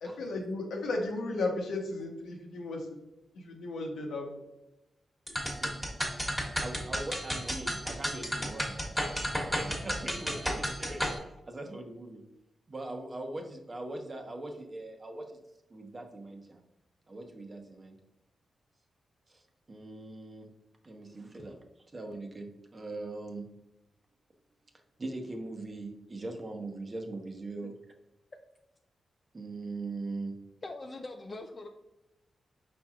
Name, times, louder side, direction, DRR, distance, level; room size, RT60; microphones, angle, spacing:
voice 1, 0.0-3.0 3.3-4.4, left 2 dB, 90° left, 1 dB, 1.0 m, -35 dB
sound 1, 5.3-11.2, equal, 5° left, 1.4 m, -33 dB
voice 2, 6.6-11.1 11.4-12.2 12.7-15.3 15.7-16.6 17.1-18.0 19.3-19.4 19.7-20.5 20.8-21.6 21.9-23.5 25.0-27.7 29.3-30.4, right 2 dB, 35° right, 3 dB, 0.9 m, -41 dB
voice 3, 30.6-31.7, left 2 dB, 35° left, 4 dB, 0.4 m, -42 dB
5.2 x 4.3 x 2.4 m, 0.94 s
cardioid pair, 75°, 0 cm